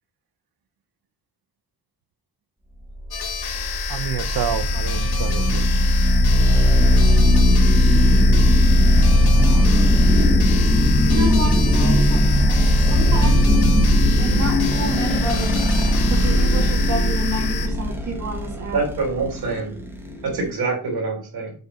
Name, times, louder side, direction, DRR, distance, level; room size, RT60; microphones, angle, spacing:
sound 1, 3.1-17.7, left 7 dB, 80° left, 1.4 m, -31 dB
sound 2, 3.1-20.5, left 1 dB, 5° right, 1.1 m, -17 dB
voice 1, 3.9-5.8 11.5-11.9 12.2-12.6, right 9 dB, 65° right, 0.7 m, -30 dB
voice 2, 11.1-12.2 12.6-13.4 14.2-15.6 16.1-18.8, right 2 dB, 50° right, 1.7 m, -29 dB
voice 3, 18.7-19.7 20.2-21.5, right 3 dB, 90° right, 3.4 m, -25 dB
8.0 x 3.5 x 5.5 m
wide cardioid pair, 135°, 38 cm